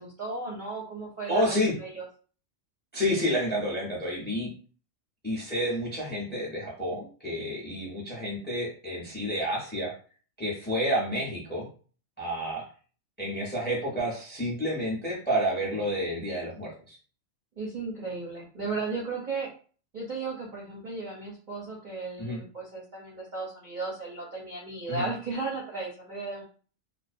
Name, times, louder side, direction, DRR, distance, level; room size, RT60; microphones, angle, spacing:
voice 1, 0.0-2.0 17.6-19.5 19.9-26.4, right 3 dB, 50° right, -5 dB, 0.6 m, -35 dB
voice 2, 1.3-1.7 2.9-4.5 5.2-9.9 10.4-11.7 12.2-12.6 13.2-17.0 22.2-22.4 24.9-25.0, equal, 10° left, -3 dB, 0.6 m, -29 dB
2.4 x 2.0 x 2.5 m, 0.39 s
omnidirectional pair, 1.4 m